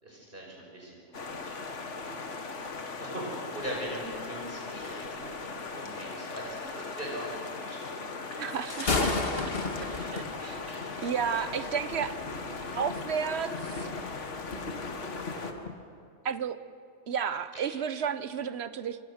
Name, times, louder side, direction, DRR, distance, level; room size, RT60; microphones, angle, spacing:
voice 1, 0.0-2.2 3.0-7.9 10.6-10.9 11.2-11.5 17.5-17.6, equal, 50° right, -2 dB, 5.6 m, -41 dB
sound 1, 1.1-15.5, left 4 dB, 90° left, 1.8 m, -39 dB
voice 2, 8.3-9.5 9.8-10.6 11.0-12.2 12.7-13.9 16.2-16.6 17.1-19.0, right 7 dB, 65° right, 12 dB, 1.1 m, -32 dB
Thunder, 8.5-15.7, left 3 dB, 55° left, 1.9 m, -35 dB
26.5 x 25.0 x 6.5 m, 2.4 s
omnidirectional pair, 1.2 m